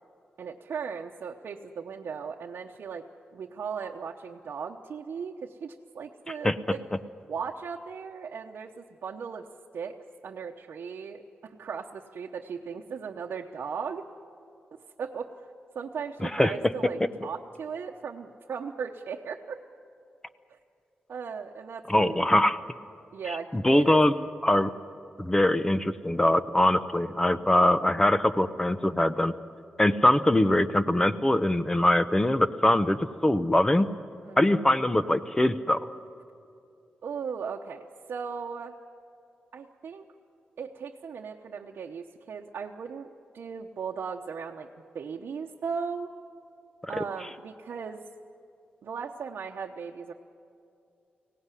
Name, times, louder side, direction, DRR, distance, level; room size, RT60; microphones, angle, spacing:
voice 1, 0.4-6.8 7.3-9.5 9.7-10.0 10.2-14.1 15.0-15.5 15.7-19.6 20.5-20.6 21.1-22.1 23.1-24.0 24.5-24.6 34.2-34.7 37.0-38.8 39.5-40.0 40.6-44.7 44.9-46.1 46.9-48.0 48.8-50.1, right 6 dB, 75° right, -1 dB, 0.9 m, -37 dB
voice 2, 16.2-16.7 21.9-22.6 23.3-24.1 24.4-24.7 25.2-29.3 29.8-33.9 34.4-35.8 47.0-47.1, left 1 dB, 15° left, 12 dB, 0.8 m, -23 dB
24.0 x 17.5 x 9.9 m, 2.6 s
wide cardioid pair, 100°, 4 cm